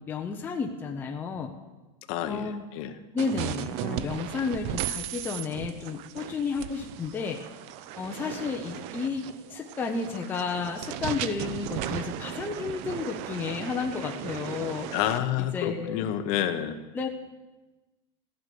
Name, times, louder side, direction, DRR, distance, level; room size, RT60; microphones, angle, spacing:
voice 1, 0.0-1.5 2.3-2.6 3.1-7.4 8.0-14.9 15.4-16.1 16.9-17.1, left 5 dB, 10° left, 2 dB, 0.7 m, -32 dB
voice 2, 2.1-2.9 14.9-16.8, left 11 dB, 45° left, 8 dB, 1.0 m, -29 dB
sound 1, 3.2-15.2, right 11 dB, 40° right, 0.5 m, -36 dB
14.5 x 6.7 x 9.3 m, 1.1 s
supercardioid pair, 170°, 16 cm